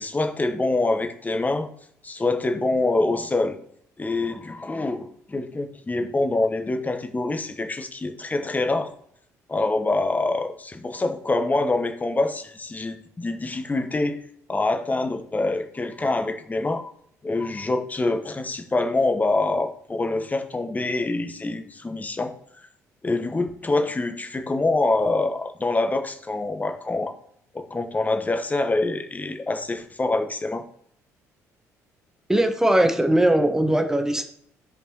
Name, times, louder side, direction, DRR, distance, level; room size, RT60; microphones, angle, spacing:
voice 1, 0.0-1.7 2.0-3.6 4.0-8.9 9.5-14.2 14.5-16.9 17.2-22.3 23.0-27.1 27.5-30.6, left 2 dB, 20° left, 6 dB, 1.0 m, -25 dB
voice 2, 32.3-34.2, right 1 dB, 5° right, 5 dB, 1.3 m, -20 dB
14.0 x 5.2 x 3.0 m, 0.68 s
figure-of-eight pair, 50°, 8 cm